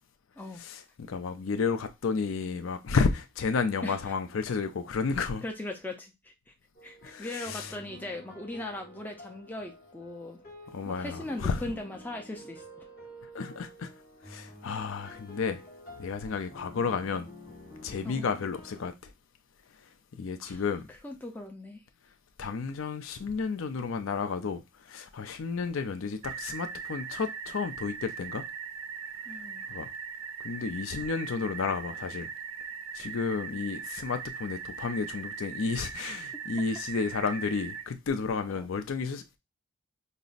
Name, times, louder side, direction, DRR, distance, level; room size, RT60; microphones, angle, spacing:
voice 1, 0.5-5.4 7.0-7.7 10.7-11.6 13.3-13.9 14.3-15.6 16.0-17.3 17.8-19.1 20.1-20.9 22.4-28.4 29.7-29.9 30.4-32.3 32.9-39.4, left 5 dB, 70° left, 0.4 m, -32 dB
voice 2, 3.8-4.1 5.4-6.5 6.8-10.4 10.9-12.6 18.0-18.3 20.4-20.6 20.9-21.8 29.3-29.6 38.6-38.7, left 2 dB, 10° left, 0.4 m, -39 dB
sound 1, 6.7-18.9, equal, 45° left, 1.2 m, -49 dB
sound 2, 26.2-37.8, right 7 dB, 90° right, 0.5 m, -40 dB
5.3 x 2.0 x 2.4 m
head